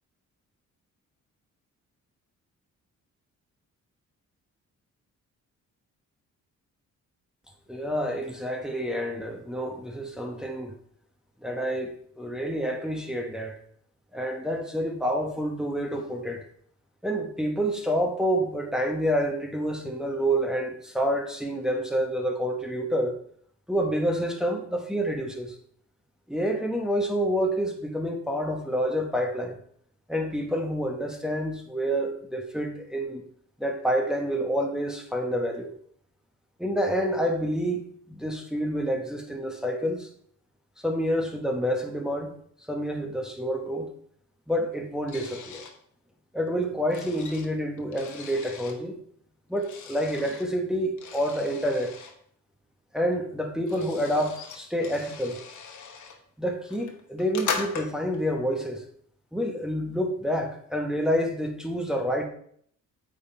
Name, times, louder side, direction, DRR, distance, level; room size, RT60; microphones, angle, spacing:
voice 1, 7.7-10.7 11.4-13.6 14.1-16.4 17.0-23.2 23.7-25.6 26.3-29.6 30.1-33.2 33.6-35.7 36.6-40.1 40.8-42.4 42.7-43.9 44.5-45.6 46.3-49.0 49.5-51.9 52.9-55.4 56.4-58.8 59.3-62.3, equal, ahead, 2 dB, 1.0 m, -28 dB
sound 1, 45.1-45.8 46.5-48.8 49.6-50.5 51.0-52.1 53.1-53.2 53.4-56.2 56.6-58.2, left 6 dB, 75° left, 1.2 m, -38 dB
8.6 x 3.8 x 4.3 m, 0.64 s
cardioid pair, 110°, 30 cm